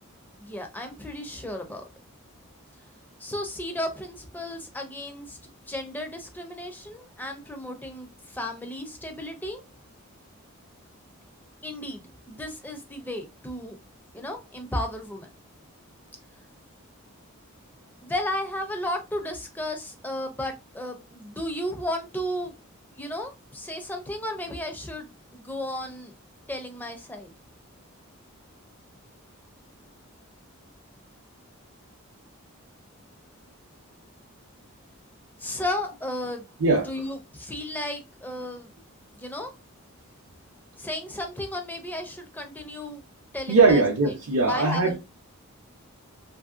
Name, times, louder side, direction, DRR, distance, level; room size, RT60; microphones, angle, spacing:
voice 1, 0.4-1.8 3.2-9.6 11.6-13.8 14.1-15.3 18.0-22.5 23.0-26.1 26.5-27.3 35.4-36.5 36.8-38.7 39.1-39.5 40.8-43.0 43.3-44.1 44.5-45.0, left 1 dB, 10° left, 0.4 m, -34 dB
voice 2, 43.5-45.0, right 3 dB, 65° right, 0.6 m, -20 dB
2.9 x 2.6 x 2.4 m
head